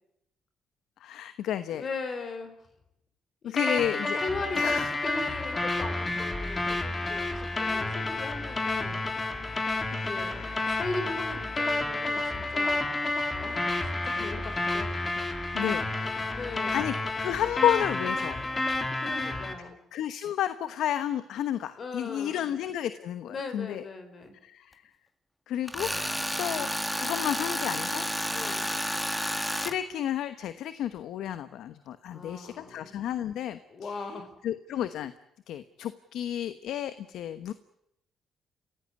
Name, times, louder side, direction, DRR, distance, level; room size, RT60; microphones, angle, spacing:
voice 1, 1.0-1.8 3.4-4.2 4.6-4.9 9.9-10.7 15.5-16.3 16.7-18.4 19.9-23.8 24.4-24.8 25.5-25.9 26.4-26.7 27.0-28.0 28.4-28.7 29.1-34.1 34.4-35.1 35.5-37.5, left 11 dB, 80° left, 12 dB, 1.1 m, -32 dB
voice 2, 1.7-2.6 3.4-3.8 4.2-9.1 9.9-12.9 13.3-14.9 16.3-16.8 19.0-19.7 21.8-22.5 23.3-24.3 28.3-28.7 32.1-33.0 33.7-34.3, left 3 dB, 50° left, 9 dB, 4.2 m, -39 dB
sound 1, 3.6-19.5, left 2 dB, 25° left, 3.4 m, -30 dB
Tools, 25.7-29.7, equal, 5° left, 2.0 m, -31 dB
28.0 x 16.0 x 9.8 m, 0.81 s
cardioid pair, 90°, 0 cm